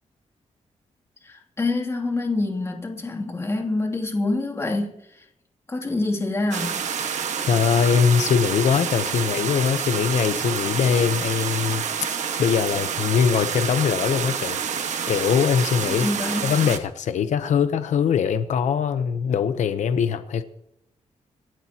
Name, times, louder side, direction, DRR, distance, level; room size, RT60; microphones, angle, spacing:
voice 1, 1.2-5.2 5.7-6.8 15.9-16.5, left 2 dB, 20° left, 2.7 m, -26 dB
sound 1, 6.5-16.8, right 7 dB, 75° right, 1.5 m, -28 dB
voice 2, 7.5-11.8 12.4-16.1 16.4-20.4, left 7 dB, 90° left, 0.8 m, -22 dB
27.0 x 12.5 x 2.9 m
wide cardioid pair, 160°, 12 cm